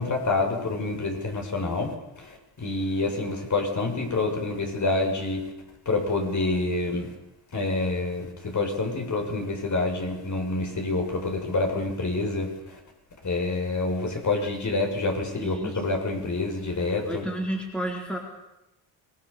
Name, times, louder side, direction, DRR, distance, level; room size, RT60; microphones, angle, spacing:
voice 1, 0.0-5.5 5.9-7.1 7.5-12.8 13.2-17.3, left 3 dB, 35° left, 3 dB, 6.9 m, -27 dB
voice 2, 15.4-15.7 17.0-18.2, right 1 dB, ahead, 0 dB, 4.5 m, -31 dB
26.0 x 20.5 x 7.1 m, 0.92 s
cardioid pair, 105°, 49 cm